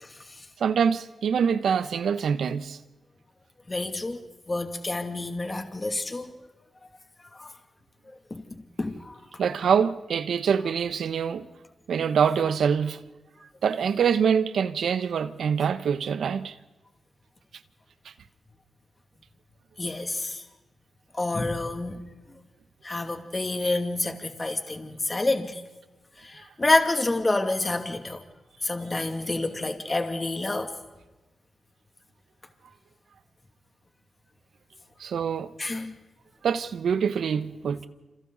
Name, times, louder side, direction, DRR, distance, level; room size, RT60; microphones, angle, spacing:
voice 1, 0.0-0.5 3.7-4.2 4.5-6.4 7.3-7.5 8.3-9.1 19.8-20.4 21.1-22.0 22.8-25.6 26.2-28.2 28.6-30.7 35.6-35.9, left 2 dB, 30° left, 2.5 m, -28 dB
voice 2, 0.6-2.8 9.4-11.4 11.9-13.0 13.6-16.5 35.0-35.5 36.4-37.8, right 7 dB, 85° right, 1.0 m, -25 dB
29.0 x 27.5 x 4.1 m
cardioid pair, 60°, 0 cm